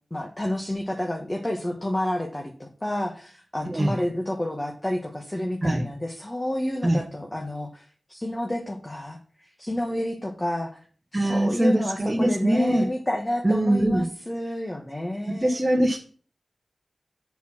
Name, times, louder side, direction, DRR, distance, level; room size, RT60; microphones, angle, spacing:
voice 1, 0.1-10.8 11.2-15.6, left 1 dB, 20° left, 2 dB, 1.3 m, -30 dB
voice 2, 11.1-12.9 13.4-14.0 15.3-16.0, right 1 dB, 20° right, 0 dB, 1.3 m, -22 dB
7.3 x 5.9 x 5.9 m, 0.42 s
wide cardioid pair, 105°, 0 cm